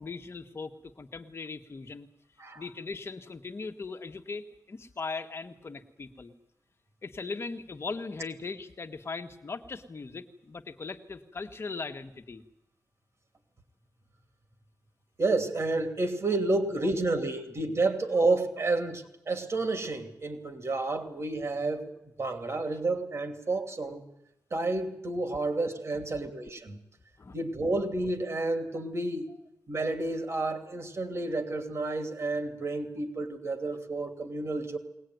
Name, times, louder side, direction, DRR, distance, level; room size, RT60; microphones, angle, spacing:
voice 1, 0.0-2.1 2.5-6.3 7.0-12.4 27.2-27.4, left 4 dB, 40° left, 6 dB, 1.6 m, -39 dB
voice 2, 15.2-21.9 22.2-24.0 24.5-26.8 27.3-29.3 29.7-34.8, right 2 dB, 45° right, 6 dB, 2.9 m, -30 dB
21.5 x 19.0 x 9.4 m, 0.84 s
wide cardioid pair, 180°, 7 cm